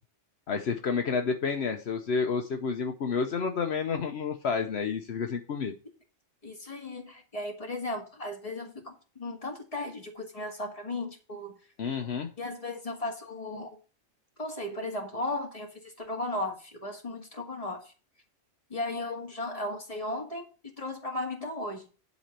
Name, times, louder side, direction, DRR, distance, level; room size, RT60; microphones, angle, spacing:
voice 1, 0.5-5.7 11.8-12.3, left 5 dB, 70° left, 5 dB, 1.1 m, -30 dB
voice 2, 6.4-11.5 12.4-13.8 14.4-17.9 18.7-21.8, left 2 dB, 30° left, 1 dB, 2.1 m, -36 dB
11.0 x 4.2 x 6.6 m, 0.35 s
omnidirectional pair, 1.2 m